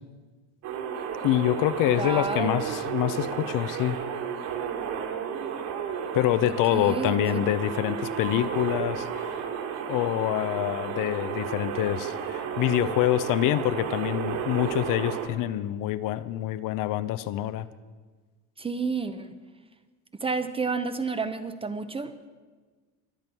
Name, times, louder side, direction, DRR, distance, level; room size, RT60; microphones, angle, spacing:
sound 1, 0.6-15.3, right 7 dB, 55° right, 2.9 m, -32 dB
voice 1, 1.2-4.0 6.1-9.1 9.9-17.7, left 13 dB, 45° left, 14 dB, 0.7 m, -26 dB
voice 2, 2.0-2.5 6.4-7.2 18.6-19.3 20.2-22.3, right 4 dB, 15° right, 10 dB, 0.7 m, -30 dB
23.0 x 8.2 x 6.1 m, 1.4 s
supercardioid pair, 120°, 44 cm